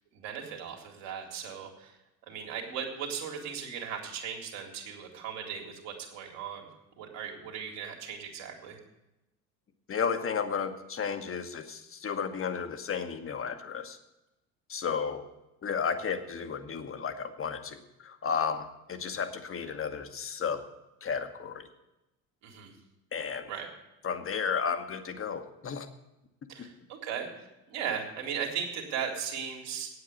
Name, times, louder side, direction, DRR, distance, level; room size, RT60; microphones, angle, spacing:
voice 1, 0.1-2.0 2.2-6.7 7.0-8.8 22.4-22.7 23.5-23.7 26.5-29.9, right 7 dB, 60° right, 1 dB, 2.5 m, -37 dB
voice 2, 9.9-14.0 14.7-15.3 15.6-20.6 21.0-21.7 23.1-23.5 24.0-25.9, left 6 dB, 25° left, 9 dB, 1.1 m, -33 dB
9.0 x 8.0 x 8.4 m, 0.94 s
figure-of-eight pair, 65°, 50 cm